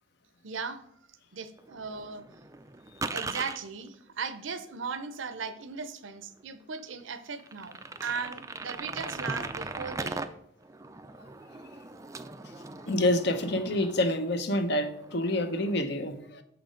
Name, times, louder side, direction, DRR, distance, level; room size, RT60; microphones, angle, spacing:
voice 1, 0.4-0.8 1.3-2.2 3.1-10.3, right 5 dB, 75° right, 0.7 m, -37 dB
sound 1, 1.6-3.6 5.2-5.3 5.8-5.9 6.4-6.5 6.8-6.9 7.3-10.3 10.6-14.4 14.7-15.8, right 3 dB, 15° right, 0.4 m, -39 dB
voice 2, 12.9-16.4, left 1 dB, 60° left, 0.8 m, -27 dB
7.1 x 6.0 x 5.1 m
head